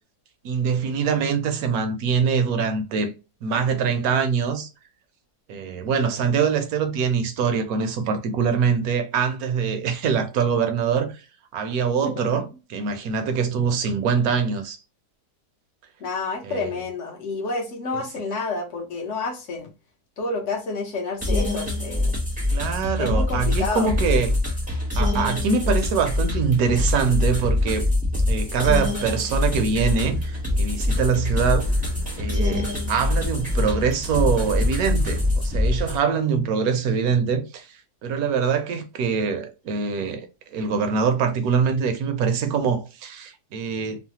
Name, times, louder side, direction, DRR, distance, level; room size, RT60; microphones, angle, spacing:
voice 1, 0.4-3.1 3.4-4.7 5.5-11.2 11.5-14.8 16.4-16.7 17.9-18.0 22.5-24.3 25.0-27.9 28.3-31.7 32.2-37.7 38.0-44.0, right 6 dB, 70° right, 1.0 m, -24 dB
voice 2, 12.0-12.5 16.0-19.7 20.2-22.2 23.0-23.9, left 3 dB, 55° left, 1.0 m, -29 dB
sound 1, 21.2-36.0, left 2 dB, 10° right, 0.6 m, -24 dB
sound 2, 29.5-35.5, equal, 85° left, 1.2 m, -38 dB
3.2 x 2.0 x 2.8 m
omnidirectional pair, 1.7 m